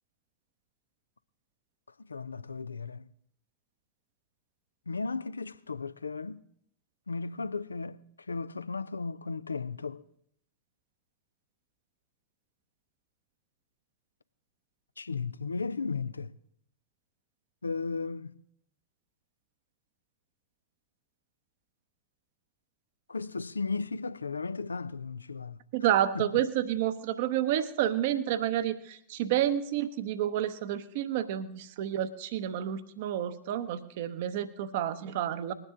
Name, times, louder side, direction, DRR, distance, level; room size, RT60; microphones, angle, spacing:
voice 1, 2.0-3.1 4.9-6.4 7.1-8.0 8.3-10.0 15.0-16.4 17.6-18.4 23.1-25.6 26.1-26.5, left 4 dB, 75° left, 0.4 m, -35 dB
voice 2, 25.7-35.5, right 11 dB, 50° right, 0.8 m, -30 dB
20.5 x 9.7 x 3.7 m
figure-of-eight pair, 90°, 0 cm